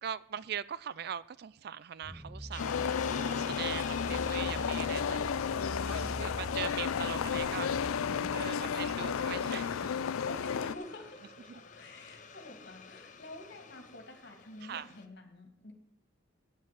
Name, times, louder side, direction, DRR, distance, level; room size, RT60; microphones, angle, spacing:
voice 1, 0.0-2.8 3.3-7.9 8.3-10.0 11.5-11.6 14.6-14.9, right 9 dB, 50° right, 0.3 m, -41 dB
sound 1, 2.0-9.2, equal, ahead, 0.7 m, -44 dB
Hiss, 2.5-15.0, left 5 dB, 35° left, 0.7 m, -48 dB
sound 2, 2.6-10.7, left 7 dB, 85° left, 0.4 m, -33 dB
voice 2, 10.2-15.7, left 2 dB, 55° left, 2.3 m, -48 dB
9.3 x 7.6 x 7.4 m
head